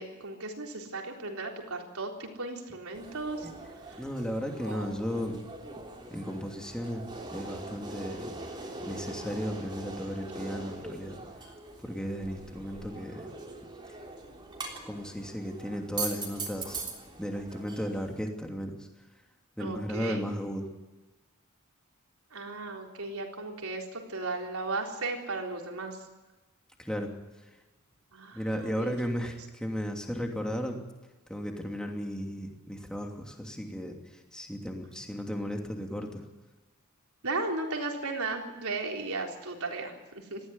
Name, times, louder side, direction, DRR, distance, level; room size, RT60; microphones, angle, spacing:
voice 1, 0.0-3.5 3.9-4.0 4.6-4.9 19.6-20.2 22.3-26.0 28.1-28.9 37.2-40.4, right 3 dB, 75° right, 1 dB, 3.8 m, -36 dB
sound 1, 2.9-18.2, right 3 dB, 20° right, 3.4 m, -42 dB
voice 2, 4.0-5.4 6.1-7.1 7.3-8.3 8.8-11.2 11.8-13.3 14.9-16.9 17.2-18.8 19.6-20.7 26.8-27.1 28.3-30.8 31.3-33.9 34.3-36.2, equal, 5° left, 2 dB, 2.8 m, -35 dB
19.5 x 14.5 x 9.7 m, 1.2 s
head